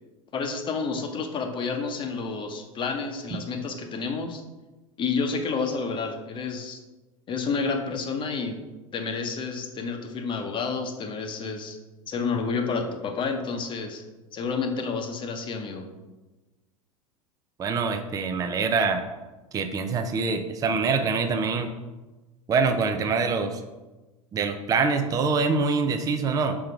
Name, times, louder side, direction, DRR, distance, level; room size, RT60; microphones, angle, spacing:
voice 1, 0.3-4.4 5.0-6.8 7.3-8.6 8.9-11.8 12.1-14.0 14.3-15.9, left 4 dB, 30° left, 5 dB, 0.9 m, -30 dB
voice 2, 17.6-19.0 19.5-21.7 22.5-23.6 24.3-26.6, right 4 dB, 20° right, 6 dB, 0.6 m, -25 dB
5.5 x 3.7 x 5.8 m, 1.1 s
figure-of-eight pair, 85°, 18 cm